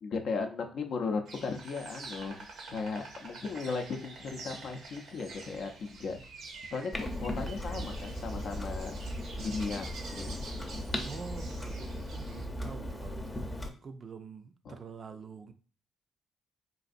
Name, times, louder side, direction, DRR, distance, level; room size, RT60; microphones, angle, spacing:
voice 1, 0.0-2.4 2.7-6.2 6.7-9.0 9.4-10.6 14.7-14.8, left 4 dB, 65° left, 4 dB, 0.5 m, -36 dB
Insect, 1.2-12.4, right 3 dB, 75° right, 0.7 m, -47 dB
Clock, 6.9-13.7, left 1 dB, 15° left, 0.6 m, -37 dB
voice 2, 11.0-13.4 13.8-15.5, right 5 dB, 45° right, 9 dB, 0.4 m, -46 dB
3.9 x 2.5 x 2.5 m, 0.40 s
cardioid pair, 90°, 0 cm